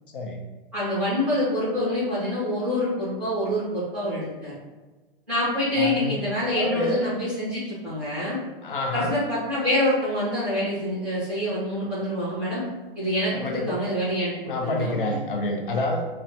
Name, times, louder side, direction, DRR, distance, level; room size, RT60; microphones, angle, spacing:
voice 1, 0.7-4.6 5.3-8.4 8.9-12.6 13.0-15.2, left 1 dB, 5° right, -12 dB, 0.6 m, -26 dB
voice 2, 5.8-6.2 6.5-7.1 8.6-9.1 13.3-13.8 14.5-16.0, left 2 dB, 60° left, 2 dB, 0.7 m, -28 dB
6.0 x 2.1 x 2.7 m, 1.2 s
hypercardioid pair, 175°, 30 cm